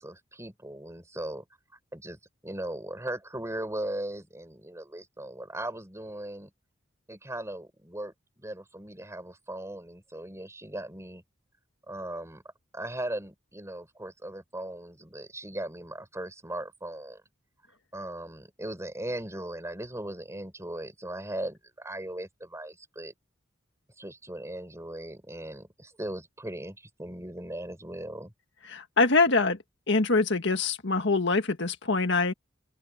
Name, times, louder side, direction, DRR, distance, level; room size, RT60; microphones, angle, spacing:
voice 1, 0.0-1.4 1.9-6.5 7.1-11.2 11.9-12.4 12.7-17.2 17.9-23.1 24.0-28.3, right 1 dB, 15° right, 6.8 m, -38 dB
voice 2, 28.7-29.6 29.9-32.3, left 3 dB, 65° left, 1.8 m, -24 dB
open air
head